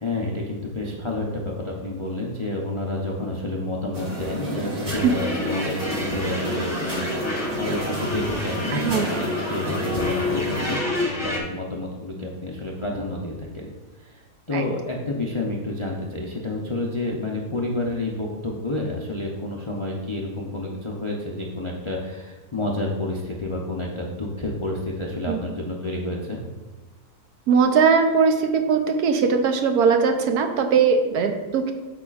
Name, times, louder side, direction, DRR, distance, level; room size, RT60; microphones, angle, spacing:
voice 1, 0.0-13.7 14.0-14.2 14.5-26.4, left 2 dB, 40° left, -2 dB, 0.4 m, -29 dB
sound 1, 3.9-10.7, right 2 dB, 40° right, 1.6 m, -31 dB
sound 2, 4.9-11.4, left 2 dB, 10° left, 1.2 m, -29 dB
voice 2, 8.7-9.2 14.5-14.6 25.3-25.4 27.5-31.7, right 5 dB, 75° right, 5 dB, 1.2 m, -20 dB
8.6 x 7.0 x 2.5 m, 1.2 s
omnidirectional pair, 1.7 m